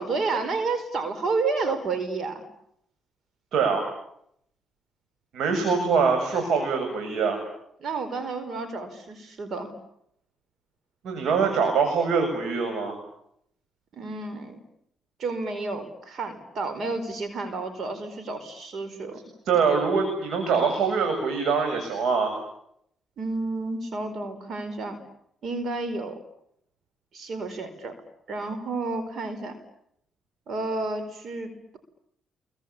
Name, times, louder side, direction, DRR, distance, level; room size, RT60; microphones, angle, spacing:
voice 1, 0.0-2.4 7.8-9.7 13.9-14.6 15.2-19.2 23.2-25.0 25.4-26.2 27.1-28.0 28.3-29.5 30.5-31.8, right 3 dB, 55° right, 10 dB, 4.7 m, -30 dB
voice 2, 3.5-3.9 5.3-7.4 11.0-13.0 19.4-22.3, right 5 dB, 75° right, 5 dB, 7.6 m, -24 dB
29.0 x 23.5 x 8.6 m, 0.73 s
cardioid pair, 90°, 0 cm